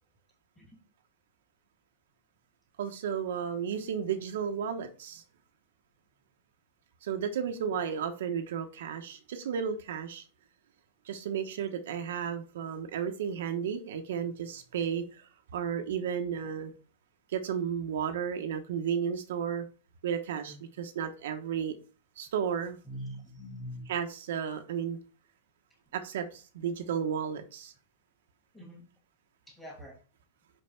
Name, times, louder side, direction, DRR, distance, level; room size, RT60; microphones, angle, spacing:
voice 1, 2.8-5.2 7.0-10.3 11.1-16.7 17.3-19.7 20.0-21.7 22.2-22.8 23.9-25.0 25.9-27.7, right 7 dB, 70° right, 1.1 m, -33 dB
voice 2, 22.8-23.8 28.5-28.8 29.5-29.9, equal, 5° left, 2.7 m, -43 dB
6.0 x 5.4 x 4.5 m
supercardioid pair, 170°, 0 cm